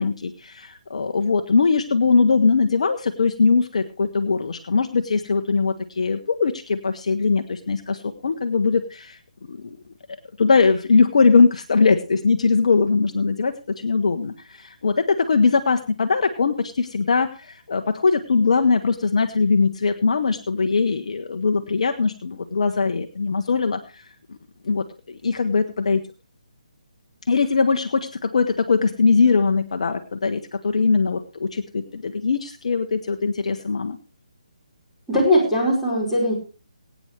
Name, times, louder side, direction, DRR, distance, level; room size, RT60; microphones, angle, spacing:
voice 1, 0.0-9.2 9.5-9.7 10.4-24.0 24.3-24.4 24.6-26.0 27.3-34.0, left 4 dB, 55° left, 7 dB, 1.1 m, -21 dB
voice 2, 35.1-36.3, equal, ahead, -8 dB, 5.0 m, -19 dB
22.5 x 9.3 x 3.3 m, 0.33 s
figure-of-eight pair, 145°, 4 cm